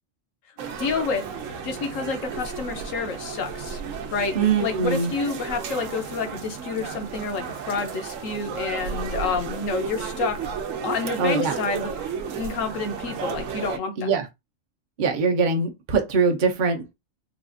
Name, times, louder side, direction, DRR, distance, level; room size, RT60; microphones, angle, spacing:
sound 1, 0.6-13.8, right 6 dB, 75° right, 1.0 m, -33 dB
voice 1, 0.8-1.2 1.6-3.8 4.1-4.3 4.6-10.4 10.8-11.9 12.4-14.1, left 4 dB, 75° left, 1.1 m, -28 dB
voice 2, 4.3-5.1 11.2-11.5 14.0-14.2 15.0-16.9, right 5 dB, 50° right, 0.7 m, -22 dB
4.0 x 2.4 x 2.5 m
omnidirectional pair, 1.4 m